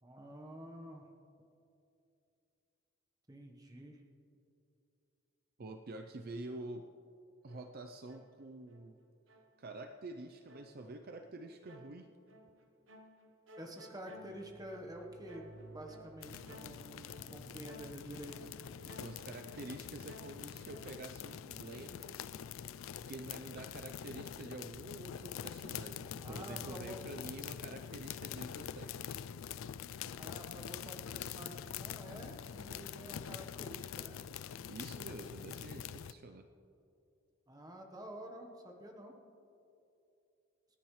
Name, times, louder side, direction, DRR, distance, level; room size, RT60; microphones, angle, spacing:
voice 1, 0.0-1.1 3.3-4.0 13.6-18.5 26.2-27.0 30.2-34.2 37.5-39.2, right 1 dB, 20° right, 2 dB, 1.2 m, -49 dB
voice 2, 5.6-6.9 7.4-9.0 9.6-12.1 18.8-22.2 23.0-29.2 34.7-36.5, right 2 dB, 50° right, 6 dB, 0.6 m, -47 dB
sound 1, 7.5-8.9 9.3-20.8, equal, 70° right, 1.1 m, -57 dB
sound 2, 16.2-36.1, left 8 dB, 85° left, 0.4 m, -45 dB
28.0 x 10.5 x 3.2 m, 2.7 s
head